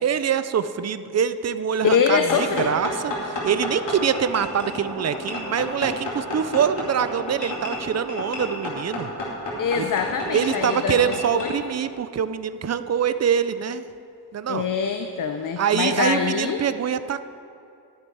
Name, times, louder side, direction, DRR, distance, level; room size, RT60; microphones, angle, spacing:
voice 1, 0.0-9.1 9.8-9.9 10.3-13.8 14.3-14.7 15.6-17.2, right 8 dB, 40° right, 12 dB, 0.5 m, -24 dB
voice 2, 1.8-2.7 9.6-11.5 14.5-16.6, left 6 dB, 50° left, 6 dB, 0.6 m, -24 dB
sound 1, 2.3-11.5, left 1 dB, 80° left, 3.0 m, -31 dB
11.5 x 9.8 x 4.7 m, 2.6 s
wide cardioid pair, 115°, 42 cm